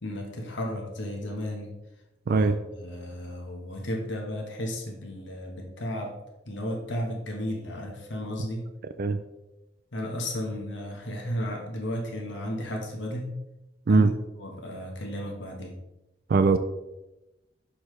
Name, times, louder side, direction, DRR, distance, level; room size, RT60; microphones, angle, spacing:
voice 1, 0.0-1.7 2.3-2.5 2.7-6.1 6.5-8.6 9.9-13.3 13.9-14.1 14.4-15.7, equal, 70° left, 0 dB, 1.2 m, -34 dB
voice 2, 2.3-2.6 9.0-9.2 13.9-14.1 16.3-16.6, right 4 dB, 55° right, 9 dB, 0.4 m, -20 dB
6.6 x 5.6 x 3.2 m, 0.96 s
head